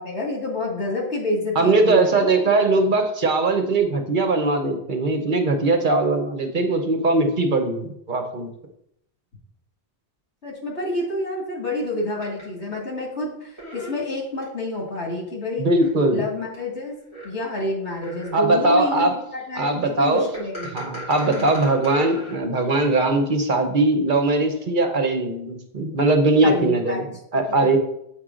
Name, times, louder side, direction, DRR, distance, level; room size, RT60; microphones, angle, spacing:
voice 1, 0.0-2.3 10.4-15.7 16.1-17.0 17.2-20.8 21.3-21.5 26.4-27.1 27.5-27.8, left 1 dB, 85° left, -2 dB, 2.3 m, -28 dB
voice 2, 1.5-8.5 15.6-16.2 18.3-19.1 19.5-20.3 20.7-27.8, right 2 dB, 50° right, 4 dB, 0.9 m, -20 dB
sound 1, 12.2-12.4 13.6-14.4 14.9-15.0 15.8-15.9 16.5-16.6 17.1-17.3 18.0-18.5 20.3-22.4, right 1 dB, 25° left, 3.1 m, -36 dB
8.2 x 4.7 x 3.7 m, 0.75 s
omnidirectional pair, 1.1 m